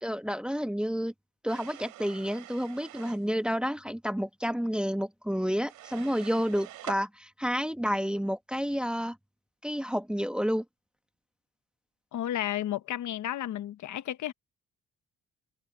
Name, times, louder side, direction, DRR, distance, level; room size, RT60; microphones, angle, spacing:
voice 1, 0.0-1.1 1.4-9.2 9.6-10.6, equal, 5° right, 1.3 m, -30 dB
sound 1, 1.5-3.3 5.7-7.0, right 14 dB, 90° right, 4.3 m, -45 dB
voice 2, 12.1-14.3, left 12 dB, 70° left, 1.2 m, -32 dB
cardioid pair, 90°, 30 cm